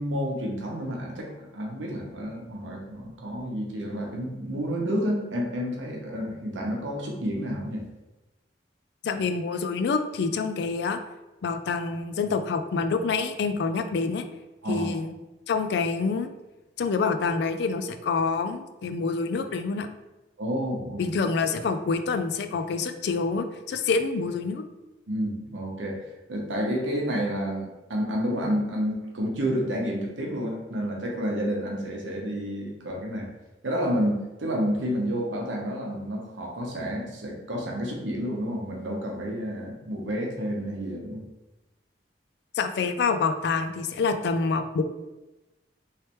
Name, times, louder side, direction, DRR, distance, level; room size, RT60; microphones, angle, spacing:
voice 1, 0.0-7.9 14.6-15.0 20.4-21.1 25.1-26.0 26.3-33.3 33.6-41.2, equal, 90° right, 0 dB, 0.8 m, -30 dB
voice 2, 9.0-11.0 11.4-14.2 14.7-15.1 15.5-16.3 16.8-19.9 21.0-24.6 42.6-44.8, left 4 dB, 60° left, 8 dB, 0.3 m, -27 dB
3.2 x 3.1 x 3.0 m, 1.0 s
head